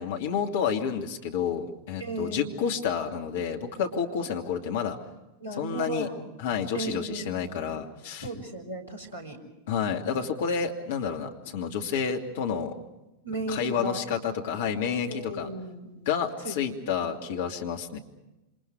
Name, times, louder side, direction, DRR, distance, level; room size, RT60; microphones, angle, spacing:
voice 1, 0.0-5.0 5.6-6.1 6.4-8.3 9.7-12.7 13.5-15.5 16.1-18.0, left 7 dB, 55° left, 3 dB, 2.8 m, -29 dB
voice 2, 2.0-2.5 5.4-6.2 6.7-7.4 8.2-9.4 13.2-14.0 15.1-15.9 16.4-17.2, right 2 dB, 85° left, 2 dB, 5.4 m, -36 dB
28.5 x 26.5 x 4.9 m, 0.99 s
figure-of-eight pair, 90°, 0 cm